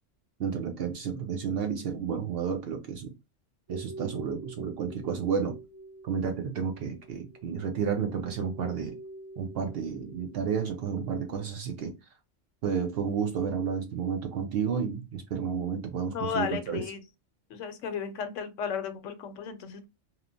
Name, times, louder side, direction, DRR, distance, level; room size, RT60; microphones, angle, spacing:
voice 1, 0.4-3.1 3.7-5.6 6.0-9.0 9.4-11.9 12.6-16.8, right 6 dB, 65° right, 0.6 m, -31 dB
sound 1, 3.7-10.8, right 2 dB, 25° right, 1.1 m, -46 dB
voice 2, 16.1-17.0 17.5-19.9, left 6 dB, 75° left, 0.9 m, -34 dB
2.9 x 2.0 x 2.4 m
omnidirectional pair, 1.3 m